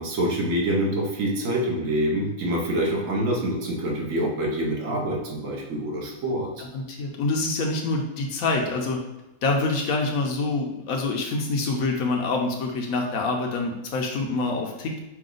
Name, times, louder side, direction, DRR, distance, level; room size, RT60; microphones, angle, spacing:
voice 1, 0.0-6.5, right 1 dB, 65° right, -1 dB, 1.2 m, -26 dB
voice 2, 6.6-9.0 9.4-15.0, left 3 dB, 75° left, 1 dB, 1.1 m, -26 dB
5.8 x 2.3 x 3.8 m, 0.97 s
omnidirectional pair, 1.5 m